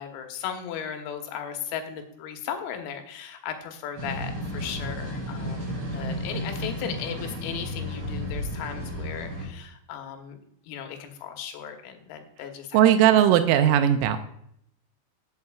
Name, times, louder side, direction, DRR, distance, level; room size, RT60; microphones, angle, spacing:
voice 1, 0.0-10.4 10.7-12.9, left 8 dB, 85° left, 5 dB, 3.8 m, -36 dB
sound 1, 4.0-9.5, equal, 20° right, 4.4 m, -33 dB
voice 2, 12.7-14.2, right 10 dB, 90° right, 8 dB, 3.3 m, -18 dB
17.0 x 7.8 x 2.4 m, 0.71 s
omnidirectional pair, 5.9 m